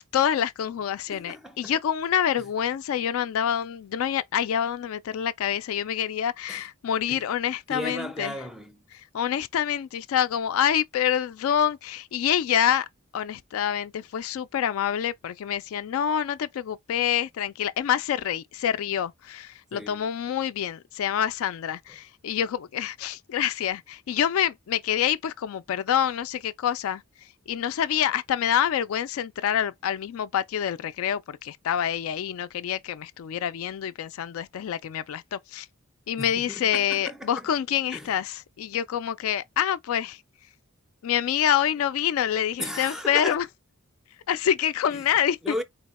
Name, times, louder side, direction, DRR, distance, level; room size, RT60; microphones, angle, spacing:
voice 1, 0.0-8.4 9.1-12.9 13.1-27.0 27.5-35.7 36.1-40.2 41.0-43.5 44.3-45.4, left 9 dB, 65° left, 0.3 m, -26 dB
voice 2, 1.1-1.8 6.5-6.6 7.1-7.2 7.7-8.8 19.7-20.1 36.2-37.5 37.9-38.1 42.6-43.4 44.9-45.0 45.4-45.6, left 1 dB, ahead, 0.5 m, -35 dB
4.0 x 2.2 x 4.0 m
head